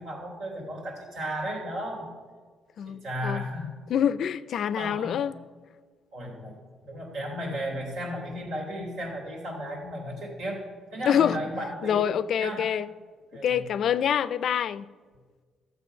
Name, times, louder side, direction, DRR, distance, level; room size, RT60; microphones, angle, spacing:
voice 1, 0.0-2.1 2.8-3.7 4.8-5.2 6.1-6.6 6.8-10.6 10.9-12.1 12.4-12.7 13.3-14.0, equal, 85° right, 3.3 m, -34 dB
voice 2, 2.8-3.4 3.9-5.4 11.1-11.4 11.8-12.9 13.4-14.9, left 9 dB, 65° left, 0.4 m, -26 dB
13.0 x 7.2 x 5.7 m
cardioid pair, 90°, 0 cm